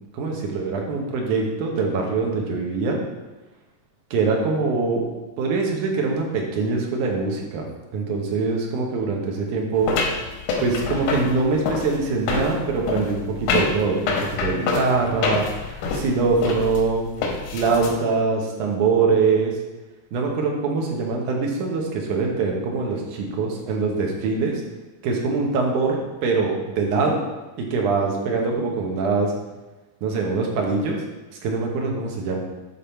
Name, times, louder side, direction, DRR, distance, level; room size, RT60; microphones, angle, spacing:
voice 1, 0.1-3.0 4.1-5.1 5.4-7.6 7.9-10.2 10.6-13.2 13.5-17.1 17.5-19.5 20.1-24.6 25.0-27.2 27.6-29.3 30.0-31.0 31.4-32.4, right 4 dB, 85° right, 0 dB, 2.7 m, -23 dB
sound 1, 9.9-17.9, left 4 dB, 90° left, 2.6 m, -26 dB
11.0 x 3.7 x 4.4 m, 1.1 s
omnidirectional pair, 3.5 m